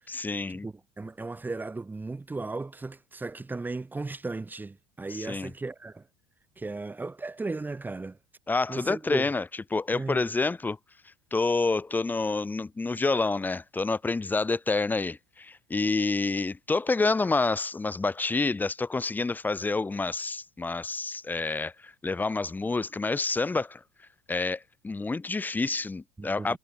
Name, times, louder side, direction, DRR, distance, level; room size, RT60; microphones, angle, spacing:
voice 1, 0.1-0.7 5.1-5.5 8.5-9.4 9.7-10.8 11.3-23.8 24.3-26.6, left 3 dB, 15° left, 1.7 m, -28 dB
voice 2, 0.6-6.1 6.6-8.2 8.7-9.2 9.9-10.3 26.2-26.6, right 3 dB, 15° right, 4.5 m, -36 dB
figure-of-eight pair, 70°, 13 cm